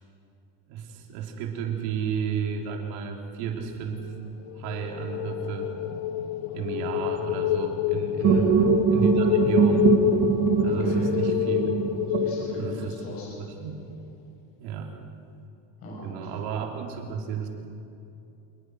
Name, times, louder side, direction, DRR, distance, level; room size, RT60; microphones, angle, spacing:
voice 1, 0.7-4.1 4.6-5.7 6.5-8.5 8.9-9.9 10.6-11.7 12.6-12.9 13.3-13.8 14.6-14.9 16.0-17.5, right 7 dB, 65° right, 1 dB, 3.8 m, -32 dB
sound 1, 4.5-13.4, left 12 dB, 90° left, 1.3 m, -28 dB
voice 2, 8.2-8.6 10.6-11.4 12.2-13.3 15.8-16.3, left 1 dB, 35° left, -4 dB, 6.8 m, -40 dB
sound 2, 8.2-13.0, right 7 dB, 40° right, 1.9 m, -23 dB
27.5 x 20.5 x 6.5 m, 2.6 s
cardioid pair, 175°, 39 cm